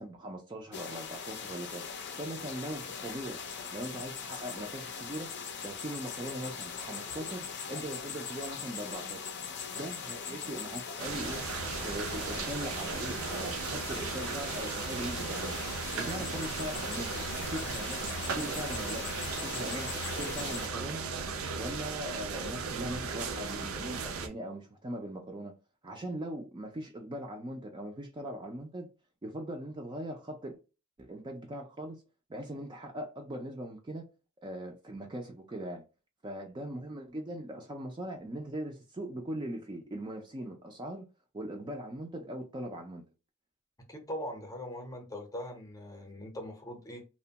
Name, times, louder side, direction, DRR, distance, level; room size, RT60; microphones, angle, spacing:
voice 1, 0.0-1.8 2.2-3.4 3.7-5.3 5.6-9.3 9.7-11.4 11.8-15.6 16.0-19.1 19.4-21.0 21.6-25.5 25.8-28.9 29.2-30.6 31.0-32.0 32.3-34.0 34.4-35.8 36.2-41.1 41.3-43.0, right 1 dB, 20° right, 0.4 m, -40 dB
sound 1, 0.7-20.7, left 6 dB, 55° left, 0.5 m, -41 dB
sound 2, 11.0-24.3, right 5 dB, 75° right, 0.5 m, -36 dB
voice 2, 43.8-47.0, equal, 15° left, 0.7 m, -41 dB
2.8 x 2.2 x 2.7 m
head